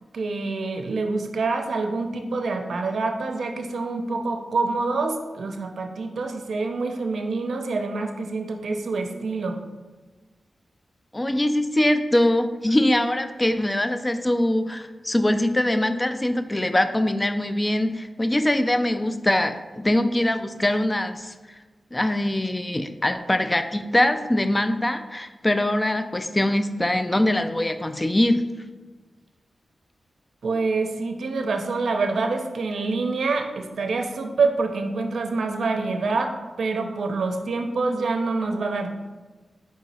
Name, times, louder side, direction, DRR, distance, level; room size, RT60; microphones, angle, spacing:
voice 1, 0.1-9.6 30.4-39.0, right 3 dB, 80° right, 4 dB, 0.5 m, -26 dB
voice 2, 11.1-21.6 21.9-28.4, left 1 dB, 20° left, 9 dB, 0.3 m, -23 dB
4.6 x 2.8 x 4.1 m, 1.3 s
cardioid pair, 65°, 0 cm